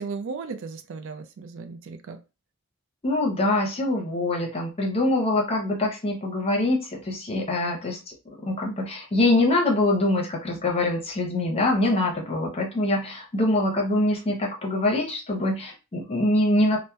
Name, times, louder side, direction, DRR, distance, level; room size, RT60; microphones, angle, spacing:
voice 1, 0.0-2.2, right 4 dB, 60° right, 7 dB, 0.4 m, -35 dB
voice 2, 3.0-8.0 8.2-16.8, left 2 dB, 25° left, -1 dB, 0.7 m, -24 dB
2.8 x 2.1 x 2.2 m, 0.29 s
head